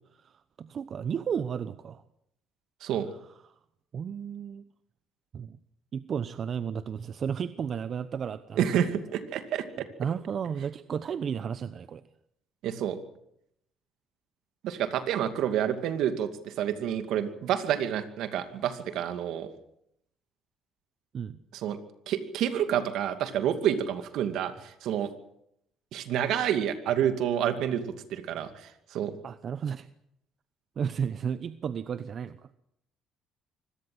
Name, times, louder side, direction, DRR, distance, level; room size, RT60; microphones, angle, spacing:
voice 1, 0.6-2.0 3.9-4.6 5.3-5.6 5.9-8.7 10.0-12.0 21.1-21.4 29.2-29.9 30.8-32.4, right 7 dB, 50° right, 13 dB, 0.9 m, -33 dB
voice 2, 8.6-9.9 12.6-13.0 14.6-19.5 21.5-21.8 22.1-25.1 25.9-29.1, right 9 dB, 75° right, 8 dB, 2.5 m, -29 dB
24.5 x 17.5 x 8.0 m, 0.78 s
cardioid pair, 90°, 0 cm